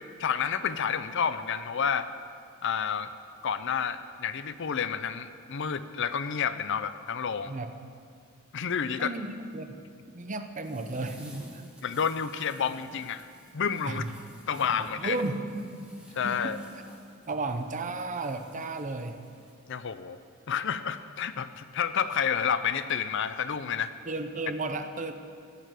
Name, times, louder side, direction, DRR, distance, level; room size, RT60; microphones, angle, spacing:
voice 1, 0.2-2.1 2.6-3.1 3.4-7.5 8.5-9.1 11.8-13.3 13.5-14.0 14.5-15.2 16.2-16.6 19.7-20.2 20.5-23.9, left 7 dB, 60° left, 12 dB, 0.6 m, -30 dB
voice 2, 9.0-9.8 10.1-11.7 13.9-14.1 14.8-16.6 17.3-19.2 24.1-25.1, right 2 dB, 35° right, 8 dB, 0.8 m, -34 dB
sound 1, 10.6-19.5, equal, 5° right, 1.7 m, -53 dB
15.0 x 6.6 x 9.2 m, 2.3 s
head